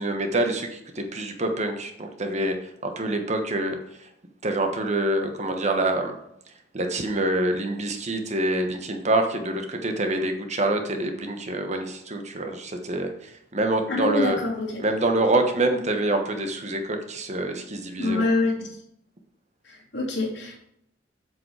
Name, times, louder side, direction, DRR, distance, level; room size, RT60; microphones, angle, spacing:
voice 1, 0.0-2.6 2.8-3.8 4.4-6.2 6.7-14.4 14.8-18.3, right 1 dB, 40° right, 5 dB, 1.2 m, -26 dB
voice 2, 13.9-14.8 18.0-18.7 19.6-20.6, left 2 dB, 75° left, -2 dB, 2.9 m, -25 dB
7.9 x 7.0 x 4.9 m, 0.76 s
head